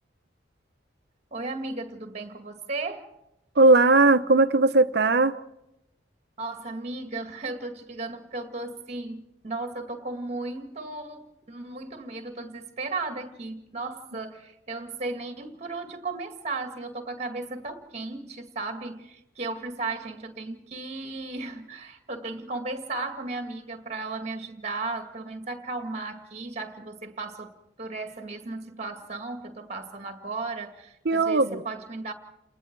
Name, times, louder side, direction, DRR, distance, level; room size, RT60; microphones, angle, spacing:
voice 1, 1.3-3.1 6.4-32.1, right 3 dB, 35° right, 6 dB, 2.1 m, -35 dB
voice 2, 3.6-5.3 31.0-31.6, right 3 dB, 60° right, 11 dB, 0.9 m, -18 dB
29.5 x 20.0 x 4.7 m, 0.86 s
head